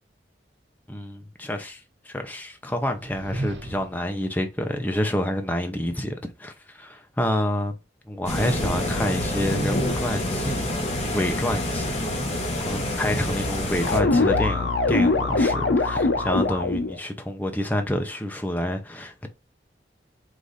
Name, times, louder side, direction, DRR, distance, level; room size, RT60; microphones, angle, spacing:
voice 1, 0.9-7.8 8.1-10.7 11.1-11.9 12.7-19.3, left 1 dB, 10° left, 0.6 m, -28 dB
sound 1, 2.9-4.1, right 1 dB, 80° right, 1.1 m, -33 dB
sound 2, 8.2-14.0, left 1 dB, 35° left, 1.0 m, -27 dB
sound 3, 13.8-16.9, left 3 dB, 80° left, 0.6 m, -22 dB
4.9 x 2.5 x 4.0 m
head